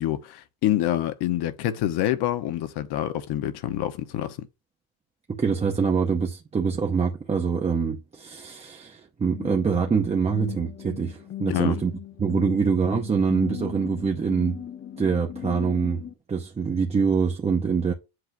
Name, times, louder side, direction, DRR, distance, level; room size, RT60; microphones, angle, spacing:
voice 1, 0.0-4.5 11.5-11.8, left 12 dB, 55° left, 1.0 m, -26 dB
voice 2, 5.3-11.9 12.2-14.6 15.0-16.0 16.3-17.9, right 5 dB, 15° right, 0.5 m, -25 dB
sound 1, 9.3-16.1, left 12 dB, 25° left, 0.7 m, -38 dB
7.9 x 2.6 x 5.9 m
cardioid pair, 170°, 47 cm